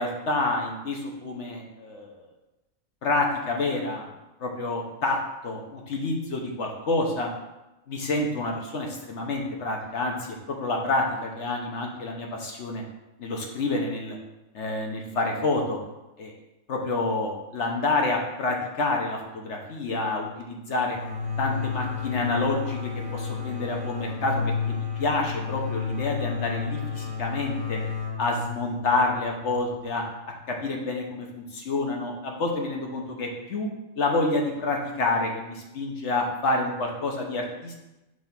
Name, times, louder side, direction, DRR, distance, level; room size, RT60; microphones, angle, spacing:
voice 1, 0.0-2.3 3.0-4.1 4.4-5.2 5.4-7.3 7.9-10.1 10.5-12.8 13.2-14.2 14.5-15.8 16.2-16.3 16.7-21.0 21.4-27.8 28.2-30.0 30.5-33.7 34.0-37.7, left 2 dB, 55° left, 1 dB, 1.2 m, -28 dB
sound 1, 20.9-30.4, left 6 dB, 5° right, 0.8 m, -32 dB
6.0 x 3.4 x 5.8 m, 0.99 s
omnidirectional pair, 1.5 m